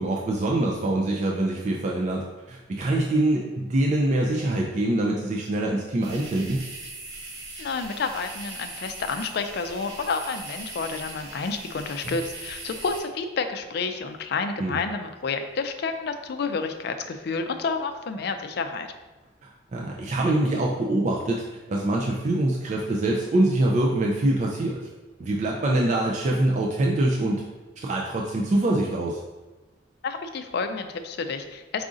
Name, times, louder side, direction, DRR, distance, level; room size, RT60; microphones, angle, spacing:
voice 1, 0.0-2.2 2.5-6.6 14.6-14.8 19.4-24.8 25.2-27.4 27.8-29.2, right 1 dB, 40° right, -2 dB, 0.4 m, -24 dB
sound 1, 6.0-13.0, right 2 dB, 75° right, 1.0 m, -40 dB
voice 2, 7.6-18.9 30.0-31.8, left 4 dB, 60° left, 7 dB, 0.4 m, -30 dB
4.8 x 2.5 x 3.7 m, 1.2 s
head